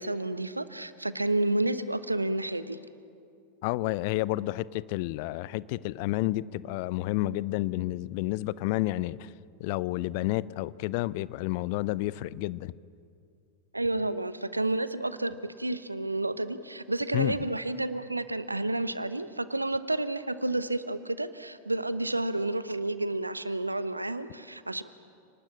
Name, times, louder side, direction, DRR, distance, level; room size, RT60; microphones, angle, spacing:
voice 1, 0.0-2.8 13.7-24.8, right 2 dB, 85° right, 1.0 m, -30 dB
voice 2, 3.6-9.3 9.6-12.7 17.1-17.5, left 17 dB, 45° left, 0.6 m, -30 dB
30.0 x 19.5 x 8.7 m
figure-of-eight pair, 90°, 0 cm